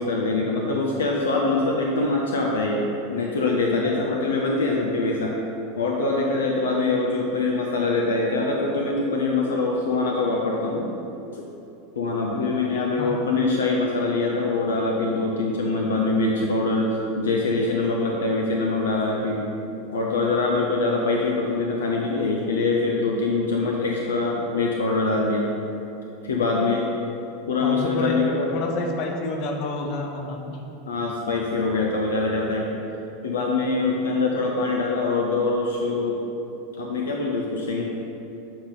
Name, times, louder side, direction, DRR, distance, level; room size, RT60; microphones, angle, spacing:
voice 1, 0.0-5.3 5.8-10.9 11.3-11.4 12.0-19.5 19.9-25.5 26.2-26.9 27.5-28.5 30.9-32.7 33.2-36.2 36.8-37.8, left 3 dB, 70° left, -1 dB, 0.6 m, -24 dB
voice 2, 27.6-28.2 28.5-30.6, left 3 dB, 50° left, 2 dB, 0.8 m, -29 dB
7.6 x 4.2 x 3.9 m, 2.8 s
figure-of-eight pair, 85°, 0 cm